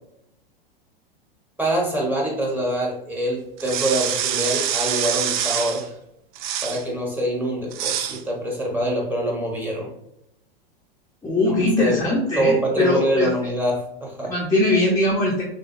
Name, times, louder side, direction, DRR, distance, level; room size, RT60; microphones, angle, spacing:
voice 1, 1.6-5.9 6.6-9.9 11.4-11.9 12.4-14.3, right 1 dB, 5° right, -2 dB, 1.2 m, -25 dB
sound 1, 3.6-5.8 6.4-6.8 7.7-8.2, right 10 dB, 55° right, 0.5 m, -25 dB
voice 2, 11.2-13.3 14.2-15.4, left 2 dB, 10° left, -6 dB, 0.8 m, -21 dB
6.2 x 2.3 x 2.7 m, 0.79 s
hypercardioid pair, 120°, 29 cm